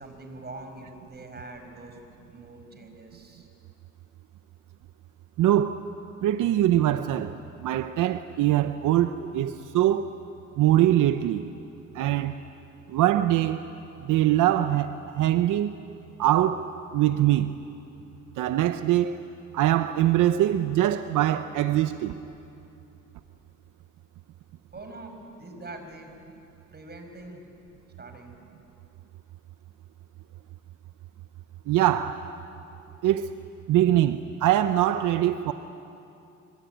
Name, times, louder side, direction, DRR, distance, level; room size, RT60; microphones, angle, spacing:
voice 1, 0.0-2.0 2.3-3.5 12.9-13.0 24.7-25.1 25.4-26.1 26.7-27.4 28.0-28.3 32.9-33.0, right 2 dB, 35° right, 5.4 m, -43 dB
voice 2, 5.4-5.8 6.2-10.1 10.6-11.5 11.9-12.4 12.9-13.6 14.0-15.7 16.2-17.6 18.4-19.2 19.5-22.2 31.7-32.3 33.0-33.4 33.7-35.5, right 13 dB, 85° right, 0.8 m, -23 dB
25.5 x 25.0 x 9.1 m
cardioid pair, 90°, 30 cm